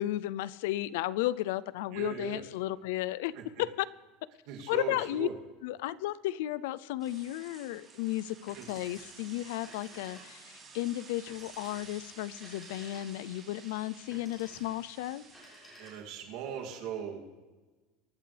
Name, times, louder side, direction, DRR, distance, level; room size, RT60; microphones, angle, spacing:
voice 1, 0.0-3.3 3.6-3.9 4.7-5.3 5.6-15.2, left 15 dB, 75° left, 19 dB, 0.4 m, -34 dB
voice 2, 1.9-2.4 3.3-3.4 4.5-5.3 8.5-8.7 15.8-17.3, right 8 dB, 60° right, 0 dB, 2.6 m, -39 dB
sound 1, 7.0-16.7, right 5 dB, 20° right, 3.8 m, -53 dB
Telephone, 8.3-9.2 9.5-10.6 11.3-13.4 14.0-14.8 15.2-16.3, equal, 10° left, 6.0 m, -54 dB
24.5 x 11.5 x 3.4 m, 1.3 s
supercardioid pair, 165°, 0 cm